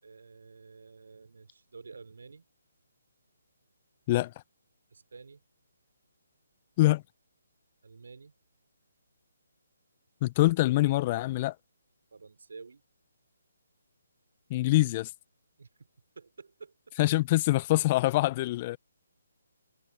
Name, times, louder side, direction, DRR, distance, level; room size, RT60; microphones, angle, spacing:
voice 1, 0.0-2.5 4.9-5.4 7.8-8.3 12.1-12.8 15.6-15.9 16.2-16.7, right 4 dB, 65° right, 4.4 m, -50 dB
voice 2, 10.2-11.5 14.5-15.1 17.0-18.8, left 17 dB, 30° left, 1.1 m, -24 dB
figure-of-eight pair, 145°, 0 cm